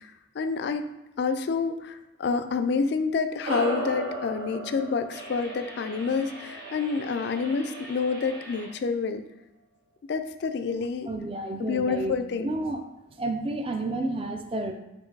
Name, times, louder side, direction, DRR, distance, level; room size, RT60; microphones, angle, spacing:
voice 1, 0.4-0.8 1.2-1.9 2.2-9.2 10.1-11.1 11.7-12.5, left 5 dB, 55° left, 9 dB, 0.3 m, -28 dB
sound 1, 3.4-8.2, right 1 dB, 90° right, 1.1 m, -36 dB
sound 2, 5.1-8.7, right 1 dB, 55° right, 1.0 m, -43 dB
voice 2, 11.0-12.1 12.4-12.8 13.2-14.7, right 2 dB, 30° right, 5 dB, 0.3 m, -30 dB
4.4 x 2.6 x 4.6 m, 0.94 s
head